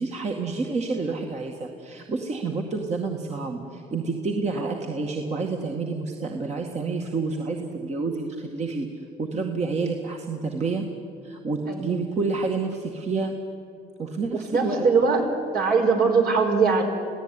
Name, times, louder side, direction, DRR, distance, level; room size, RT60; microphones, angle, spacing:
voice 1, 0.0-8.9 9.2-10.8 11.2-13.3 14.0-14.9, right 4 dB, 40° right, 1 dB, 2.1 m, -29 dB
voice 2, 11.7-12.0 14.3-15.2 15.5-16.8, right 5 dB, 65° right, 2 dB, 5.0 m, -21 dB
26.5 x 17.0 x 9.8 m, 2.5 s
cardioid pair, 110°, 17 cm